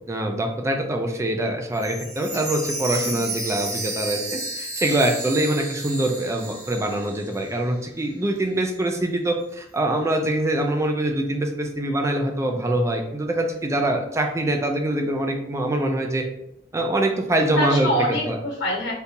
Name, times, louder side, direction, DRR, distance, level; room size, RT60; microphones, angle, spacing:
voice 1, 0.1-16.2 16.7-17.9 18.3-18.4, right 1 dB, 15° right, 3 dB, 0.3 m, -24 dB
Chime, 1.8-7.7 8.0-8.1 8.7-8.8, right 2 dB, 45° right, 1.5 m, -32 dB
voice 2, 2.9-3.2 5.2-5.3 12.4-12.7 17.6-18.9, equal, 70° left, -3 dB, 1.2 m, -26 dB
3.6 x 2.6 x 2.8 m, 0.80 s
head